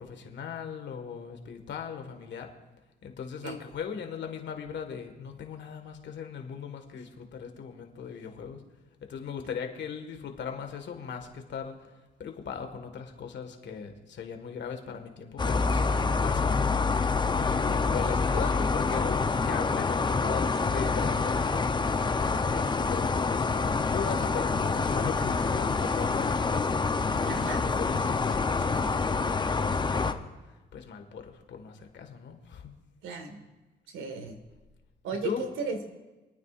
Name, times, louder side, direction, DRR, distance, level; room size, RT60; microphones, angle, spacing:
voice 1, 0.0-2.5 3.0-8.7 9.0-11.9 12.2-16.7 17.3-21.6 22.2-32.8 35.2-35.4, left 6 dB, 65° left, 5 dB, 1.7 m, -38 dB
sound 1, 15.4-30.1, left 4 dB, 20° left, 0.7 m, -27 dB
voice 2, 27.3-27.6 33.0-33.4 33.9-34.4 35.0-35.8, right 4 dB, 90° right, 5 dB, 1.7 m, -35 dB
28.0 x 9.3 x 2.5 m, 1.2 s
cardioid pair, 90°, 20 cm